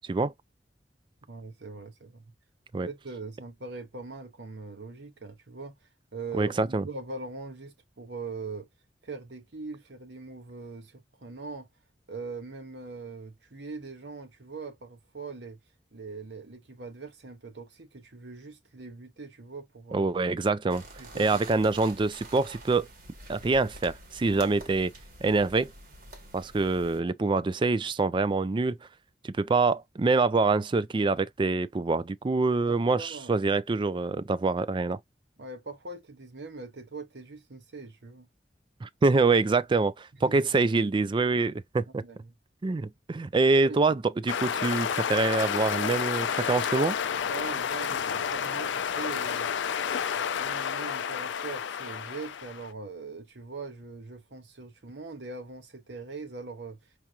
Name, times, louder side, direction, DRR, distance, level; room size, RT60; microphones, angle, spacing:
voice 1, 1.3-2.2 2.8-5.7 6.1-8.7 9.0-11.7 12.1-15.6 15.9-20.1 21.0-21.7 24.3-24.9 32.9-33.5 35.4-38.3 40.3-40.4 42.0-42.3 43.4-43.8 47.2-49.5 50.0-56.8, right 3 dB, 70° right, 1.1 m, -41 dB
voice 2, 6.3-6.9 19.9-20.8 21.1-22.9 23.3-24.9 25.2-25.7 26.3-28.8 29.2-35.0 38.8-42.0 42.6-47.0, right 3 dB, 25° right, 0.4 m, -25 dB
sound 1, 20.7-27.0, right 2 dB, 55° right, 1.4 m, -47 dB
sound 2, 44.3-52.7, left 7 dB, 90° left, 0.4 m, -30 dB
4.7 x 2.9 x 2.3 m
head